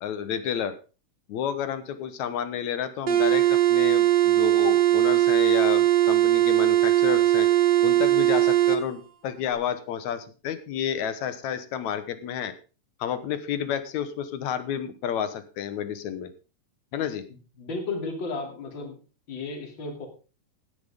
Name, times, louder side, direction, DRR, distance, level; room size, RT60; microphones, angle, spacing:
voice 1, 0.0-0.8 1.3-7.5 7.8-12.5 13.0-16.3 16.9-17.3, left 8 dB, 70° left, 12 dB, 2.3 m, -30 dB
sound 1, 3.1-8.8, right 13 dB, 50° right, 1.3 m, -20 dB
voice 2, 17.6-19.0 19.3-20.1, left 3 dB, 35° left, 3 dB, 3.4 m, -33 dB
15.5 x 10.5 x 3.6 m, 0.33 s
omnidirectional pair, 3.7 m